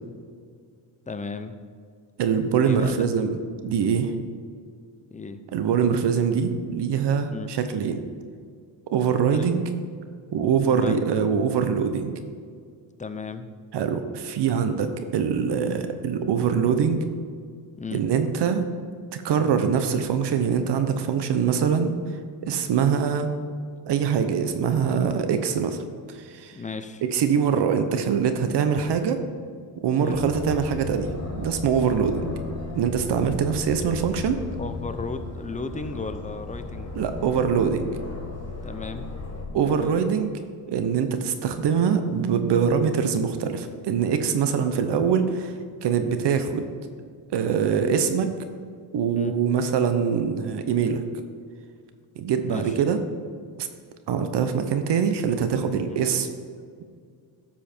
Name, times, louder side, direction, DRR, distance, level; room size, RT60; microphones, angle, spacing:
voice 1, 1.1-1.6 2.6-3.0 5.1-5.4 7.3-7.5 9.3-9.5 10.7-11.1 13.0-13.5 17.8-18.0 26.6-27.0 30.0-30.3 34.6-36.9 38.6-39.1 39.5-39.9 49.1-49.4 52.4-52.9 55.9-56.1, left 4 dB, 15° left, 9 dB, 0.7 m, -35 dB
voice 2, 2.2-4.1 5.5-8.0 8.9-9.6 10.3-12.1 13.7-17.0 17.9-18.6 19.1-21.9 22.4-23.3 23.9-25.8 26.1-26.6 27.0-29.2 29.8-32.3 32.7-34.4 37.0-37.9 39.5-40.4 40.7-45.5 45.8-46.7 47.3-48.3 48.9-51.0 52.2-53.0 53.6-53.7 54.1-56.3, right 7 dB, 70° right, 9 dB, 1.0 m, -23 dB
Aircraft, 30.1-39.4, left 3 dB, 35° left, 2.1 m, -35 dB
12.5 x 7.6 x 4.5 m, 2.1 s
cardioid pair, 110°, 42 cm